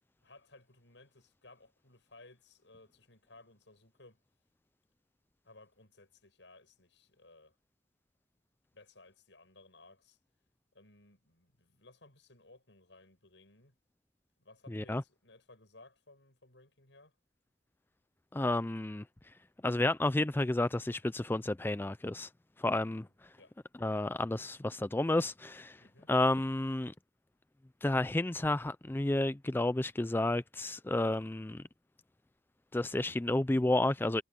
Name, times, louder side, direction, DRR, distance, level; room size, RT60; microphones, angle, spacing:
voice 1, 0.2-4.2 5.4-7.6 8.7-10.2 10.7-13.8 14.4-17.1 23.0-23.5 25.8-26.1, left 2 dB, 90° left, 7.1 m, -59 dB
voice 2, 14.7-15.0 18.3-19.0 19.6-22.3 22.6-23.1 23.8-25.8 26.1-26.9 27.8-31.6 32.7-34.2, left 2 dB, 10° left, 0.4 m, -31 dB
head